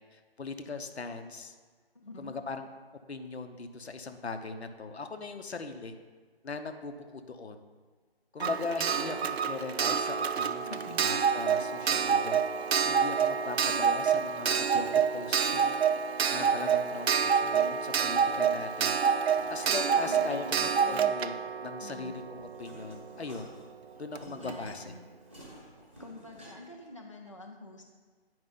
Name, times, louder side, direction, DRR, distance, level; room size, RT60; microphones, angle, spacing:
voice 1, 0.1-1.5 2.2-2.7 3.1-5.9 6.4-7.6 8.3-15.8 16.3-19.0 19.5-21.3 21.6-23.5 24.0-24.9, left 4 dB, 80° left, 7 dB, 0.9 m, -39 dB
voice 2, 2.0-2.3 8.4-8.6 8.9-9.3 10.7-11.1 20.0-21.2 21.8-22.1 24.2-25.0 25.5-27.8, left 1 dB, 30° left, 0 dB, 0.4 m, -46 dB
Clock, 8.4-23.0 24.1-24.2 24.5-24.6, right 7 dB, 75° right, 0.5 m, -28 dB
sound 1, 14.5-15.8 17.2-18.2 19.2-20.6 21.8-26.9, equal, 10° right, 0.8 m, -53 dB
9.5 x 4.8 x 3.9 m, 1.5 s
figure-of-eight pair, 170°, 32 cm